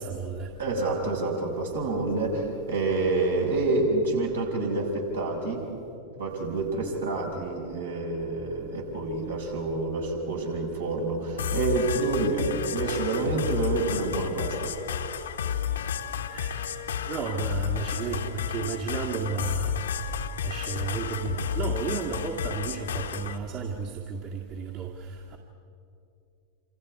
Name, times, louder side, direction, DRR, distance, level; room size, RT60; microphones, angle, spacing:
voice 1, 0.0-0.5 16.3-16.7 17.1-19.8 20.4-25.4, right 5 dB, 40° right, -2 dB, 2.1 m, -33 dB
voice 2, 0.6-5.7 6.2-14.8, right 3 dB, 70° right, -2 dB, 5.9 m, -28 dB
sound 1, 11.4-23.4, left 8 dB, 65° left, 1.2 m, -32 dB
28.0 x 28.0 x 4.8 m, 2.6 s
figure-of-eight pair, 90°, 0 cm